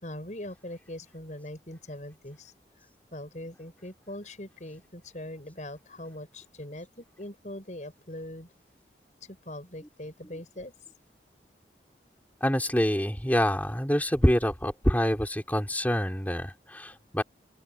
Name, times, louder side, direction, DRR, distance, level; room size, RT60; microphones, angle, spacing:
voice 1, 0.0-2.9 3.1-8.5 9.3-10.7, left 1 dB, 45° left, 5.1 m, -41 dB
voice 2, 12.4-17.2, equal, 10° left, 4.2 m, -26 dB
open air
head